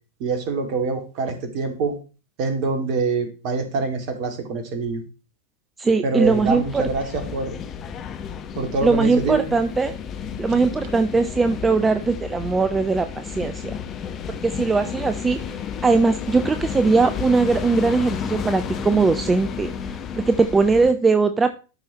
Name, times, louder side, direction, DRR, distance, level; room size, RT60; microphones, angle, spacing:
voice 1, 0.2-1.9 2.4-5.0 6.0-7.6 8.6-9.5 14.3-14.4, right 4 dB, 45° right, 5 dB, 2.2 m, -25 dB
voice 2, 5.8-6.8 8.8-9.9 10.4-13.8 14.4-15.4 15.8-20.0 20.2-21.5, right 4 dB, 15° right, 9 dB, 0.6 m, -20 dB
sound 1, 6.2-20.9, left 7 dB, 30° left, 1.0 m, -32 dB
13.0 x 5.6 x 2.9 m, 0.34 s
figure-of-eight pair, 90°, 0 cm